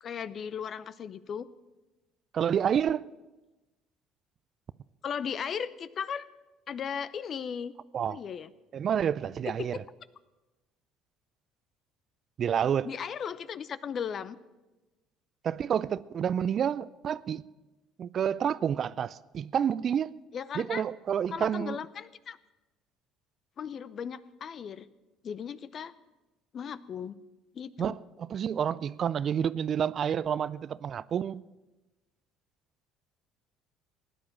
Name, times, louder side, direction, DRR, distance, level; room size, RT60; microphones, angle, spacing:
voice 1, 0.0-1.5 5.0-6.3 6.7-7.7 8.1-8.5 9.6-9.7 12.8-14.4 20.3-20.8 21.3-22.4 23.6-24.9 25.2-25.9 26.5-27.1 27.5-28.0, left 7 dB, 50° left, 0.7 m, -36 dB
voice 2, 2.3-3.0 7.9-8.2 8.7-9.8 12.4-12.9 15.4-17.4 18.0-20.1 20.5-21.8 27.8-31.4, right 8 dB, 50° right, 0.4 m, -29 dB
16.0 x 10.0 x 7.2 m
hypercardioid pair, 65°, 0 cm